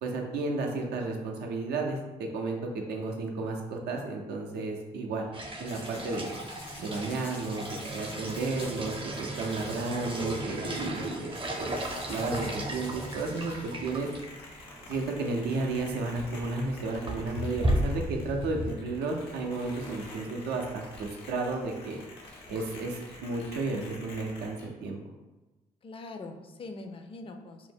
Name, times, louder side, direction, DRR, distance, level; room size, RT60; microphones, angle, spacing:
voice 1, 0.0-5.3 5.6-6.3 6.8-11.8 12.1-14.1 14.9-22.0 22.5-25.0, right 3 dB, 80° right, 2 dB, 0.4 m, -33 dB
sound 1, 5.3-14.3 14.6-14.7 14.9-15.0 16.0-16.2 16.6-18.7, right 1 dB, 30° right, 0.5 m, -35 dB
sound 2, 5.6-24.7, left 2 dB, 85° left, 0.6 m, -48 dB
voice 2, 10.5-11.2 25.8-27.7, left 2 dB, 35° left, 6 dB, 0.4 m, -43 dB
2.5 x 2.1 x 3.4 m, 1.1 s
supercardioid pair, 45°, 17 cm